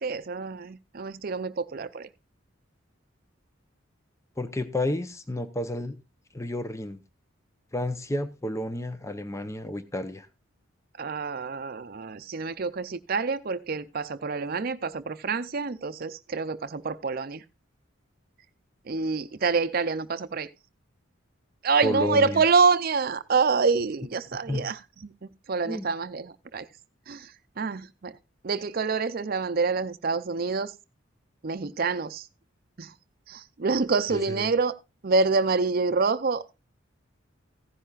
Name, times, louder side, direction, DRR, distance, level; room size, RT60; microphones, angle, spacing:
voice 1, 0.0-2.1 11.0-17.4 18.9-20.5 21.6-26.7 27.1-28.2 28.4-30.7 31.4-32.3 32.8-32.9 33.3-34.7 35.0-36.6, right 4 dB, 45° right, 0.6 m, -27 dB
voice 2, 4.4-6.0 6.3-7.0 7.7-10.3 21.8-22.4 24.5-24.7 25.7-25.9 34.1-34.5, left 1 dB, 15° left, 0.7 m, -31 dB
15.5 x 10.0 x 2.4 m
head